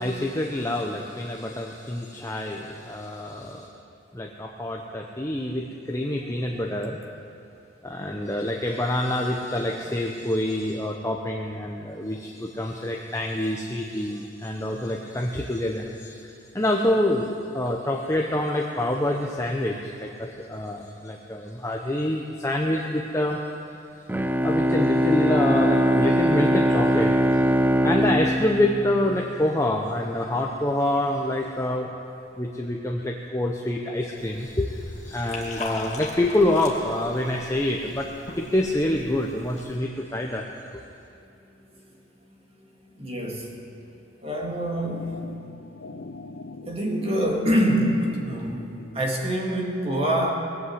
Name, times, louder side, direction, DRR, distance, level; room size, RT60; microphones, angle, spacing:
voice 1, 0.0-3.7 4.1-7.0 7.8-23.4 24.4-27.4 27.8-32.0 32.4-38.1 38.3-40.5, left 1 dB, 15° left, 0 dB, 0.7 m, -26 dB
Bowed string instrument, 24.1-29.6, equal, 10° right, 0.3 m, -22 dB
Liquid, 34.2-39.8, left 3 dB, 40° left, 1.7 m, -40 dB
voice 2, 41.4-42.0 42.3-43.6 44.2-45.4 46.7-50.3, equal, 30° right, 0 dB, 2.0 m, -26 dB
sound 1, 44.4-49.4, left 3 dB, 75° left, 0.6 m, -42 dB
20.0 x 8.3 x 7.9 m, 2.6 s
head